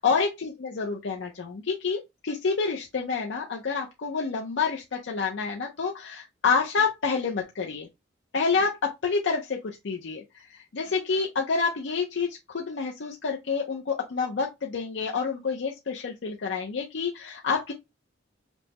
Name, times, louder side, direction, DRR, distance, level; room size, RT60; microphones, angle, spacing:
voice 1, 0.0-7.9 8.3-17.7, left 5 dB, 70° left, 0.5 m, -28 dB
5.2 x 2.0 x 2.9 m
head